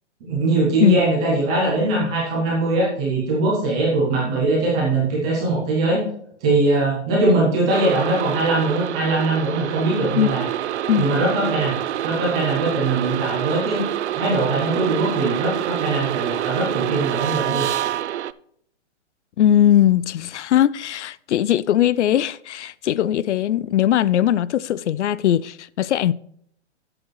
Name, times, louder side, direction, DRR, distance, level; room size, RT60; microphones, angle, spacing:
voice 1, 0.2-6.0 6.4-10.5 11.0-11.8 12.0-13.8 14.1-17.7, right 2 dB, 5° right, 0.3 m, -21 dB
sound 1, 7.7-18.3, right 11 dB, 70° right, 0.5 m, -26 dB
voice 2, 19.4-26.1, left 11 dB, 70° left, 0.5 m, -19 dB
11.5 x 7.8 x 3.1 m
hypercardioid pair, 150°, 36 cm